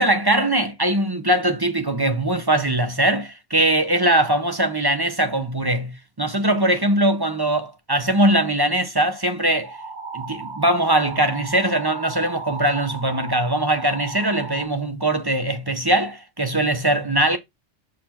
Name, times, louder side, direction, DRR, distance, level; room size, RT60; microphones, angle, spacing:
voice 1, 0.0-9.8 10.1-17.4, right 1 dB, 20° right, 0.8 m, -21 dB
sound 1, 9.6-14.7, right 3 dB, 65° right, 1.9 m, -35 dB
6.5 x 4.2 x 4.3 m
omnidirectional pair, 1.3 m